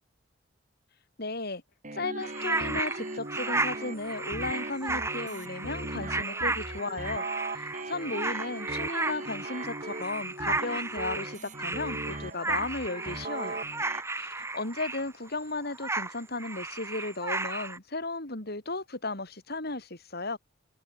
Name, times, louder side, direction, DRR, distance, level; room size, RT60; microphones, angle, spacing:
voice 1, 1.2-1.6 1.9-7.2 7.5-13.6 14.2-20.4, left 2 dB, 55° left, 4.3 m, -35 dB
sound 1, 1.8-14.0, right 2 dB, 40° right, 7.6 m, -39 dB
sound 2, 2.2-15.3 15.7-17.8, right 3 dB, 15° right, 4.8 m, -34 dB
head